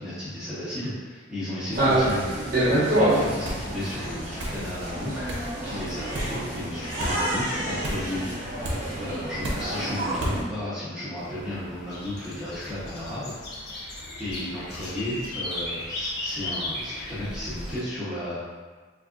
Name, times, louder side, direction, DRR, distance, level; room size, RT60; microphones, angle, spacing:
voice 1, 0.0-5.4 5.6-8.2 8.5-13.3 13.6-18.5, left 1 dB, 5° right, -13 dB, 1.0 m, -34 dB
sound 1, 1.7-10.4, right 1 dB, 50° right, 0.9 m, -27 dB
sound 2, 3.4-3.7 4.4-4.6 5.3-5.5 6.1-6.4 7.0-7.2 7.8-8.1 8.6-8.8 9.4-9.7 10.2-10.4, equal, 75° right, 0.7 m, -31 dB
sound 3, 11.2-17.8, left 1 dB, 55° left, 0.6 m, -36 dB
4.0 x 2.4 x 2.5 m, 1.4 s
head